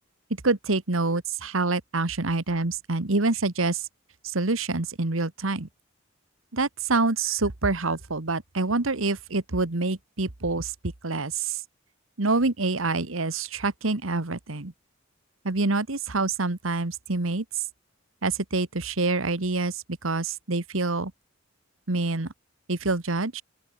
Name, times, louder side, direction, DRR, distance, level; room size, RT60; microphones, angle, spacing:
voice 1, 0.4-3.9 4.2-5.7 6.5-10.7 11.0-11.6 12.2-14.7 15.4-17.6 18.2-21.1 21.9-22.3 22.7-23.4, right 3 dB, 80° right, 1.6 m, -26 dB
open air
head